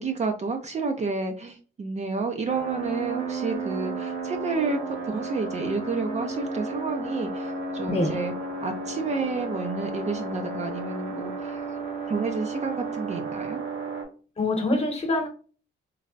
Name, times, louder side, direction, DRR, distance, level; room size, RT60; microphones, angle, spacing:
voice 1, 0.0-8.3 8.6-11.8 12.1-13.6, right 4 dB, 35° right, 0.6 m, -30 dB
sound 1, 2.5-14.0, right 3 dB, 80° right, 1.4 m, -33 dB
voice 2, 7.9-8.2 14.4-15.3, left 2 dB, 30° left, 1.1 m, -25 dB
3.2 x 2.3 x 2.4 m
cardioid pair, 90°, 20 cm